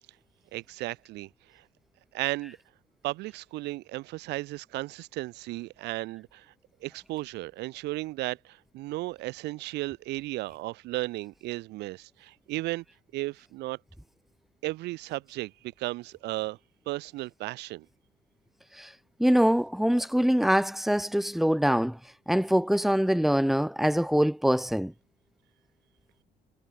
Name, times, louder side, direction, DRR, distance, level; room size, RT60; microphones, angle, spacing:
voice 1, 0.5-1.6 2.1-2.6 3.0-6.5 6.8-12.8 13.1-13.8 14.6-16.6 16.9-17.9, right 19 dB, 85° right, 5.6 m, -35 dB
voice 2, 19.2-22.0 22.3-24.9, equal, ahead, 5.0 m, -24 dB
cardioid pair, 110°, 17 cm